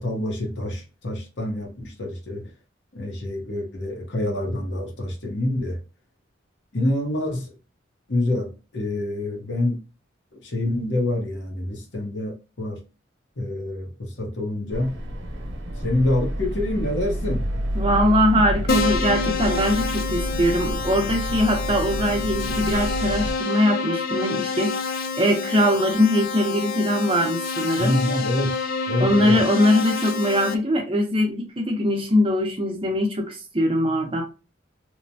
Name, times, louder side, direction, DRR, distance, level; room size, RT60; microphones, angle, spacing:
voice 1, 0.0-2.5 2.9-5.8 6.7-7.5 8.1-9.8 10.4-12.8 13.4-14.9 15.8-17.5 27.8-28.5 28.9-29.4, left 1 dB, 80° left, 0.9 m, -26 dB
sound 1, 14.7-23.3, equal, 90° right, 0.8 m, -29 dB
voice 2, 17.8-24.8 25.2-28.0 29.0-34.2, equal, 30° right, 0.6 m, -21 dB
Keyboard (musical), 18.7-30.5, left 4 dB, 50° left, 0.4 m, -28 dB
3.0 x 2.1 x 2.6 m
head